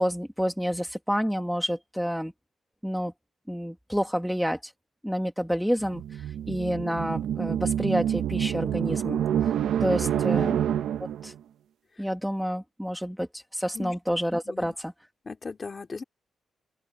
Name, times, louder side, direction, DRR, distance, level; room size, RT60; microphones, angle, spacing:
voice 1, 0.0-2.3 2.8-3.1 3.5-4.7 5.0-9.5 9.8-10.6 11.2-11.3 12.0-14.9, equal, ahead, 1.4 m, -29 dB
sound 1, 5.8-11.3, right 10 dB, 85° right, 0.8 m, -27 dB
voice 2, 10.0-10.4 12.0-12.1 13.7-13.9 14.4-14.7 15.2-16.0, left 4 dB, 30° left, 3.5 m, -38 dB
open air
cardioid pair, 130°, 0 cm